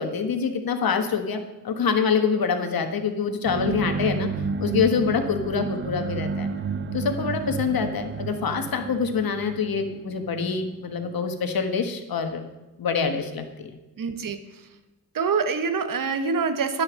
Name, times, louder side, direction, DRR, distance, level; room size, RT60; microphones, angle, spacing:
voice 1, 0.0-4.3 4.6-6.5 6.9-12.4 12.8-13.7, left 6 dB, 60° left, 6 dB, 1.4 m, -25 dB
Monster Tripod horn, 3.5-11.2, right 5 dB, 30° right, 0.5 m, -31 dB
voice 2, 14.0-14.5 15.1-16.8, right 5 dB, 55° right, 9 dB, 1.1 m, -25 dB
10.0 x 6.8 x 6.3 m, 1.1 s
cardioid pair, 85°, 39 cm